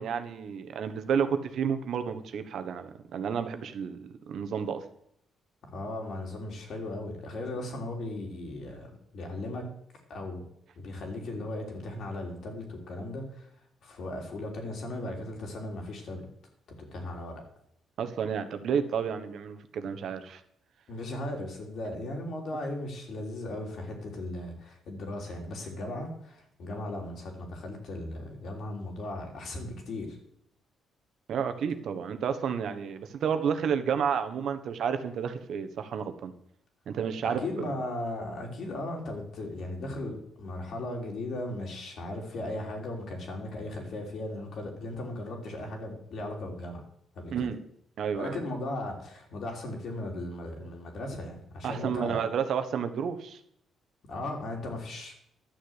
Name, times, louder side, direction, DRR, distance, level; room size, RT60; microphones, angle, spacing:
voice 1, 0.0-4.8 18.0-20.4 31.3-36.3 36.9-37.7 47.3-47.6 48.0-48.4 51.6-53.4, right 7 dB, 65° right, 9 dB, 1.3 m, -31 dB
voice 2, 5.6-9.7 10.1-10.4 10.8-13.5 13.8-16.3 16.8-17.4 20.9-30.2 37.2-46.8 47.1-47.5 48.2-52.2 54.0-55.1, left 1 dB, 65° left, 2 dB, 3.6 m, -37 dB
11.5 x 6.8 x 8.2 m, 0.71 s
cardioid pair, 90°, 0 cm